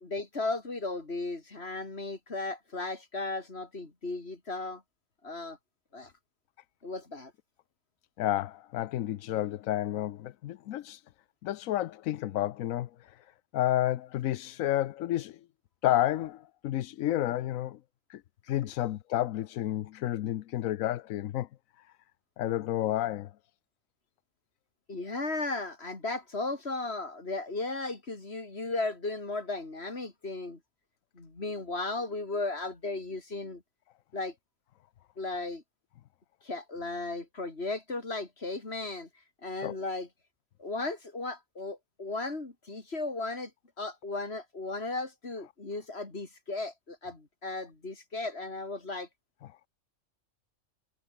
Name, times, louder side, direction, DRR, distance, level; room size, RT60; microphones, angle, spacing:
voice 1, 0.0-4.8 5.2-5.6 5.9-6.1 6.8-7.3 24.9-30.6 31.2-33.6 34.1-34.3 35.2-35.6 36.4-39.1 39.4-40.1 40.6-43.5 43.8-49.1, left 3 dB, 50° left, 3.7 m, -35 dB
voice 2, 8.2-11.0 11.4-13.2 13.5-15.4 15.8-17.8 18.1-21.5 22.4-23.3 39.6-39.7, left 13 dB, 90° left, 1.1 m, -31 dB
omnidirectional pair, 1.4 m